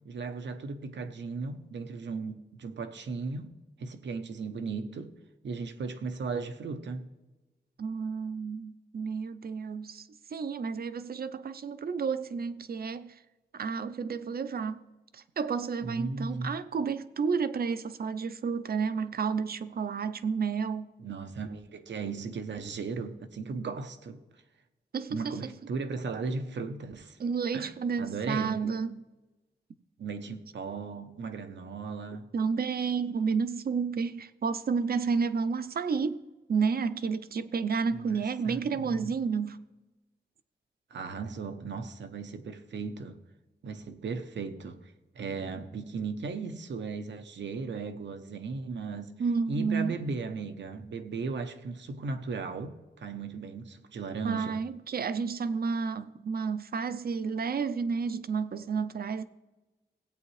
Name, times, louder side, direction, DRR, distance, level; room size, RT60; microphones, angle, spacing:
voice 1, 0.0-5.1 5.4-7.1 15.8-16.6 21.0-24.2 25.1-27.2 27.5-27.7 28.0-28.6 30.0-32.3 37.9-39.1 40.9-43.2 43.6-49.1 49.5-54.6, right 4 dB, 90° right, 0.9 m, -36 dB
voice 2, 7.8-13.1 13.5-14.8 15.1-20.9 24.9-25.5 27.2-28.9 32.3-36.2 36.5-39.7 49.2-50.0 54.2-59.2, right 5 dB, 55° right, 0.5 m, -31 dB
17.0 x 8.5 x 3.2 m
wide cardioid pair, 140°, 18 cm